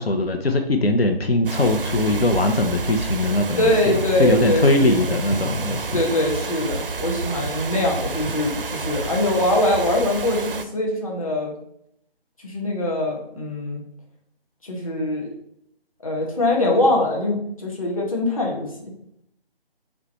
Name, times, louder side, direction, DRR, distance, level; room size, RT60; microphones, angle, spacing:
voice 1, 0.0-3.7 4.2-6.0, left 2 dB, 80° left, 5 dB, 0.7 m, -20 dB
sound 1, 1.5-10.7, right 4 dB, 65° right, 0.5 m, -29 dB
voice 2, 3.6-5.1 5.9-11.5 12.4-13.8 14.6-15.3 16.0-18.9, left 1 dB, 35° left, -1 dB, 1.0 m, -23 dB
5.9 x 2.2 x 4.1 m, 0.73 s
figure-of-eight pair, 160°, 30 cm